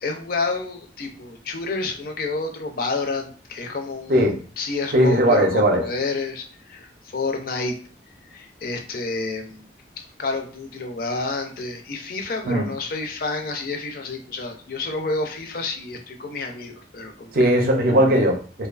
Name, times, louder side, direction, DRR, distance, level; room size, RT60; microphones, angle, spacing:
voice 1, 0.0-7.8 8.3-9.7 10.2-17.5, left 3 dB, 50° left, 4 dB, 0.4 m, -29 dB
voice 2, 4.9-5.8 12.5-12.7 17.3-18.7, equal, 50° right, 3 dB, 0.5 m, -18 dB
2.6 x 2.2 x 2.3 m, 0.42 s
head